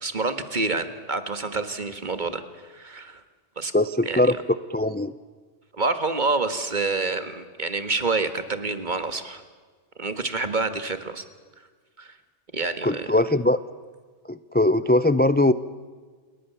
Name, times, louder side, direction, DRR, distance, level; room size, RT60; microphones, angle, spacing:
voice 1, 0.0-2.4 2.7-3.2 3.6-3.7 4.1-4.4 5.7-9.4 10.0-11.2 12.0-12.2 12.5-13.1, right 3 dB, 40° right, 10 dB, 1.8 m, -27 dB
voice 2, 3.7-4.3 4.7-5.1 12.8-13.6 14.3-15.5, left 1 dB, 15° left, 14 dB, 0.4 m, -20 dB
28.5 x 21.0 x 7.1 m, 1.5 s
omnidirectional pair, 1.2 m